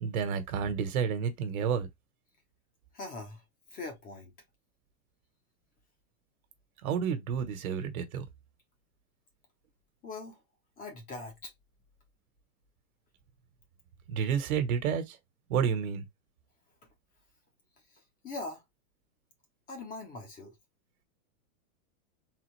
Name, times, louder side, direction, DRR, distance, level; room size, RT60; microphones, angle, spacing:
voice 1, 0.0-1.9 6.8-8.3 14.1-15.2 15.5-16.1, right 7 dB, 80° right, 1.3 m, -30 dB
voice 2, 2.9-3.4 3.7-4.3 10.0-10.4 10.8-11.5 18.2-18.6 19.7-20.6, left 3 dB, 20° left, 1.1 m, -41 dB
3.9 x 3.6 x 3.3 m
supercardioid pair, 170°, 42 cm